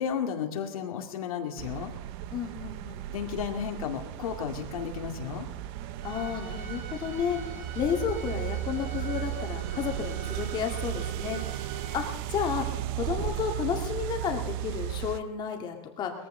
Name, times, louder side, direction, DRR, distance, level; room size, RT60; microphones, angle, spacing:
voice 1, 0.0-1.9 3.1-5.5, left 8 dB, 90° left, 4 dB, 2.2 m, -33 dB
sound 1, 1.6-15.2, right 13 dB, 45° right, 0.7 m, -35 dB
voice 2, 2.3-3.1 6.0-7.4 7.7-11.4 11.9-12.7 12.9-16.1, left 7 dB, 25° left, 3 dB, 2.0 m, -32 dB
Bowed string instrument, 6.0-12.0, right 4 dB, 80° right, 3.5 m, -45 dB
20.5 x 14.5 x 3.8 m, 1.1 s
supercardioid pair, 155°, 18 cm